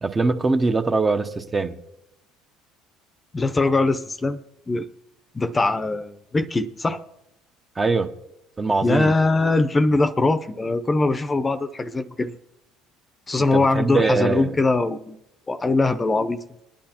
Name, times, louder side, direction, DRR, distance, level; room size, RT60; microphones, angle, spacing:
voice 1, 0.0-1.8 7.8-8.1 8.6-9.1 13.5-14.6, right 3 dB, 25° right, 8 dB, 0.8 m, -22 dB
voice 2, 3.3-4.4 4.7-4.9 5.3-7.0 8.8-12.3 13.3-15.2 15.5-16.4, left 3 dB, 25° left, 10 dB, 0.7 m, -21 dB
20.5 x 10.5 x 2.9 m, 0.88 s
hypercardioid pair, 70°, 0 cm